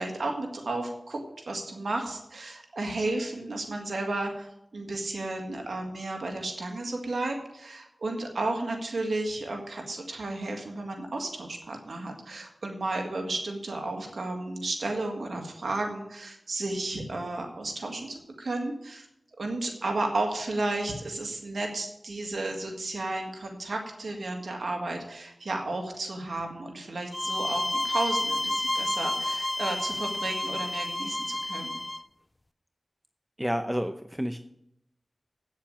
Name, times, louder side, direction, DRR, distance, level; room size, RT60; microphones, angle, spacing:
voice 1, 0.0-4.5 4.7-19.1 19.4-31.8, right 2 dB, 85° right, 3 dB, 1.8 m, -33 dB
sound 1, 27.1-32.0, left 1 dB, 30° left, 0.4 m, -30 dB
voice 2, 33.4-34.4, equal, 5° right, 8 dB, 0.7 m, -30 dB
8.9 x 7.3 x 8.8 m, 0.78 s
cardioid pair, 45°, 0 cm